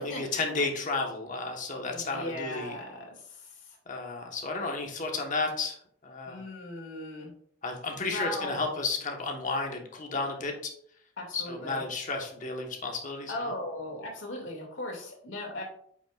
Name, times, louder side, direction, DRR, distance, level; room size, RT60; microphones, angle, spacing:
voice 1, 0.0-2.8 3.9-5.8 6.0-6.4 7.6-10.7 11.3-13.5, left 3 dB, 40° left, 2 dB, 1.2 m, -32 dB
voice 2, 1.9-3.8 6.3-7.3 8.1-8.6 11.2-11.8 13.3-15.6, left 1 dB, 90° left, -1 dB, 2.3 m, -38 dB
8.3 x 5.5 x 2.4 m, 0.64 s
head